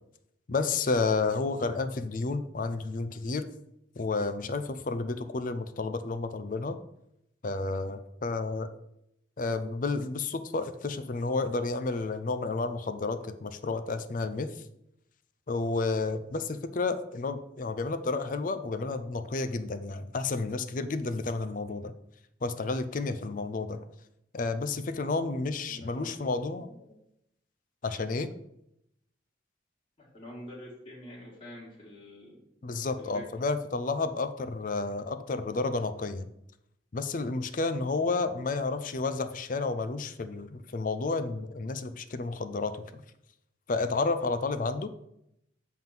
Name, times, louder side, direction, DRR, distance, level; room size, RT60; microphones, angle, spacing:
voice 1, 0.5-3.5 4.0-6.8 7.4-8.7 9.4-14.6 15.5-21.9 22.4-23.8 24.3-26.7 27.8-28.3 32.6-36.3 36.9-43.0 43.7-44.9, left 3 dB, 45° left, 11 dB, 0.5 m, -31 dB
voice 2, 25.6-26.3 26.6-26.9 30.0-32.4 33.0-33.2, left 1 dB, 30° left, -6 dB, 1.9 m, -46 dB
7.7 x 3.7 x 5.7 m, 0.80 s
head